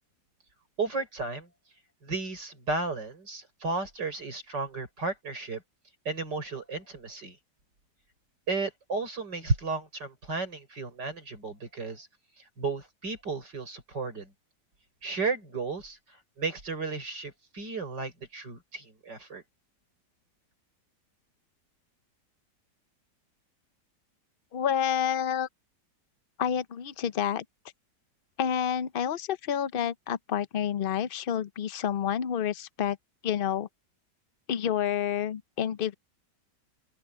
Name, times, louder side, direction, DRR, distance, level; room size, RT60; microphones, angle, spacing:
voice 1, 0.8-1.5 2.0-5.6 6.0-7.4 8.5-12.1 12.4-14.3 15.0-19.4, right 3 dB, 80° right, 6.7 m, -33 dB
voice 2, 24.5-25.5 26.4-27.4 28.4-33.0 33.2-33.7 34.5-35.9, left 9 dB, 50° left, 0.6 m, -29 dB
open air
omnidirectional pair, 1.9 m